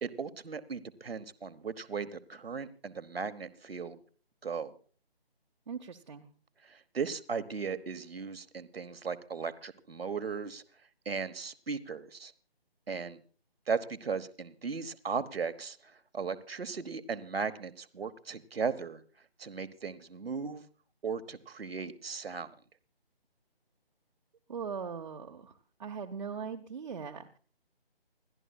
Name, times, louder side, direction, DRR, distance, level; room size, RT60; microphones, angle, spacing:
voice 1, 0.0-4.0 4.4-4.7 6.6-10.6 11.0-12.3 12.9-13.2 13.7-19.0 19.4-20.6 21.0-22.5, right 5 dB, 70° right, 12 dB, 1.1 m, -37 dB
voice 2, 5.7-6.3 24.5-25.5 25.8-27.4, right 6 dB, 45° right, 4 dB, 0.9 m, -40 dB
29.5 x 11.0 x 2.3 m, 0.41 s
figure-of-eight pair, 155°, 31 cm